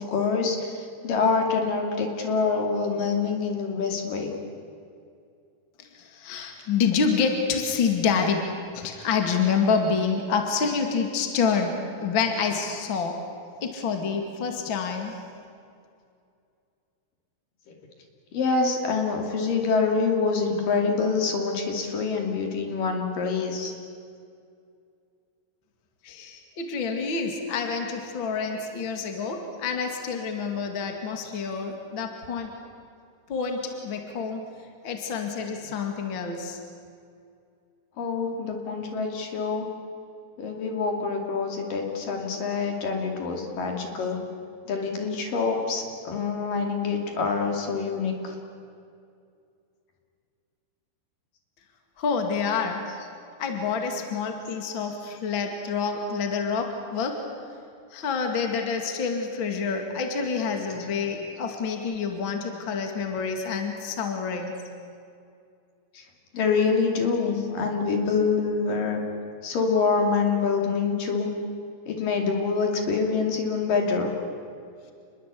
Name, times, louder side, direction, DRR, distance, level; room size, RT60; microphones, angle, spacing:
voice 1, 0.0-4.3 18.3-23.7 38.0-39.7 40.4-44.2 44.7-48.4 65.9-66.0 66.3-69.0 69.4-71.3 71.9-74.1, left 4 dB, 65° left, 2 dB, 4.2 m, -26 dB
voice 2, 6.2-8.5 8.7-13.2 13.6-15.2 26.1-32.5 33.3-34.4 34.8-36.6 52.0-52.9 53.4-57.2 57.9-64.5, left 5 dB, 35° left, 4 dB, 2.6 m, -27 dB
28.0 x 21.5 x 8.4 m, 2.4 s
omnidirectional pair, 4.3 m